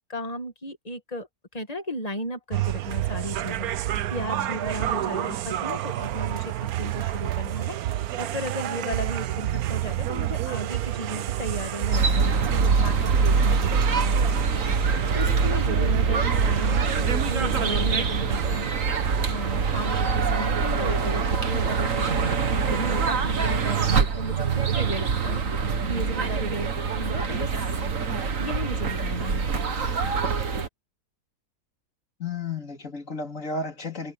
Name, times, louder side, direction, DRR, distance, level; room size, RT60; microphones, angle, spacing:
voice 1, 0.1-3.7 4.1-14.2 14.9-18.8 19.3-25.5 25.9-27.5 28.0-29.8, left 1 dB, 25° left, 2.2 m, -35 dB
sound 1, 2.5-20.0, right 13 dB, 75° right, 1.2 m, -29 dB
sound 2, 11.9-30.7, right 5 dB, 60° right, 1.9 m, -24 dB
voice 2, 32.2-34.1, left 3 dB, 55° left, 3.5 m, -32 dB
omnidirectional pair, 1.6 m